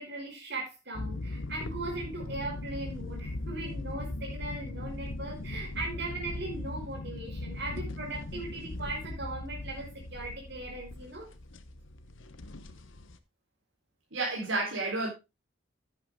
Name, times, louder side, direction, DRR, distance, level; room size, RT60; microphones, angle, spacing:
voice 1, 0.0-11.3, right 2 dB, 55° right, -3 dB, 5.5 m, -39 dB
sound 1, 0.9-13.2, left 2 dB, 75° left, 1.0 m, -39 dB
voice 2, 14.1-15.1, right 3 dB, 75° right, -3 dB, 4.1 m, -30 dB
10.5 x 9.3 x 3.6 m, 0.25 s
head